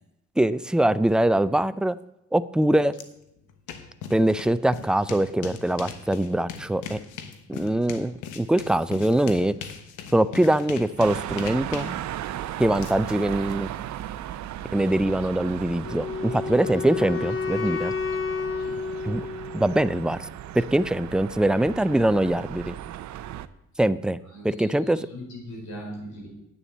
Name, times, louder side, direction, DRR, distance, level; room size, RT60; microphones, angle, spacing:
voice 1, 0.4-2.0 2.3-2.9 4.1-7.0 7.5-9.6 10.1-12.0 12.6-13.7 14.7-17.9 19.1-19.3 19.5-20.2 20.5-22.7 23.8-24.2 24.4-25.0, right 1 dB, 5° right, 14 dB, 0.4 m, -23 dB
sound 1, 2.9-3.0 3.4-13.5, left 7 dB, 90° left, 1.1 m, -40 dB
sound 2, 11.0-23.5, right 12 dB, 70° right, 0.6 m, -36 dB
Wind instrument woodwind instrument, 15.8-19.9, left 5 dB, 45° left, 1.0 m, -30 dB
voice 2, 16.0-16.5 18.6-18.8 24.2-26.3, equal, 70° left, -1 dB, 5.1 m, -41 dB
9.0 x 7.0 x 8.4 m, 0.86 s
cardioid pair, 90°, 30 cm